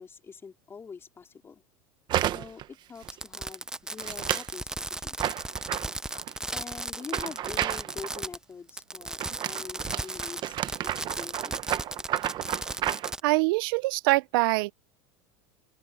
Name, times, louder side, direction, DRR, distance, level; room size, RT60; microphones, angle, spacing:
voice 1, 0.0-1.6 2.3-5.4 6.5-11.6, left 5 dB, 20° left, 4.2 m, -45 dB
sound 1, 2.1-2.7 3.0-3.4 4.0-4.5 5.2-6.3 7.0-8.2 9.2-13.1, right 12 dB, 40° right, 1.0 m, -31 dB
Fireworks, 3.0-8.4 8.7-13.2, right 2 dB, 5° right, 0.4 m, -35 dB
voice 2, 13.2-14.7, right 23 dB, 75° right, 0.5 m, -24 dB
open air
supercardioid pair, 130°, 12 cm